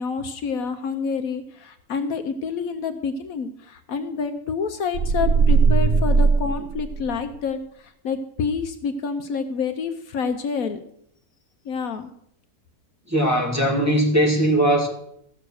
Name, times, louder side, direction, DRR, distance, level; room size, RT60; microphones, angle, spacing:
voice 1, 0.0-10.8 11.6-12.1, left 5 dB, 70° left, 8 dB, 1.2 m, -28 dB
sound 1, 4.9-7.4, right 4 dB, 60° right, 0.8 m, -19 dB
voice 2, 13.1-14.9, right 1 dB, 10° right, -2 dB, 2.0 m, -19 dB
15.0 x 6.6 x 6.3 m, 0.73 s
omnidirectional pair, 1.6 m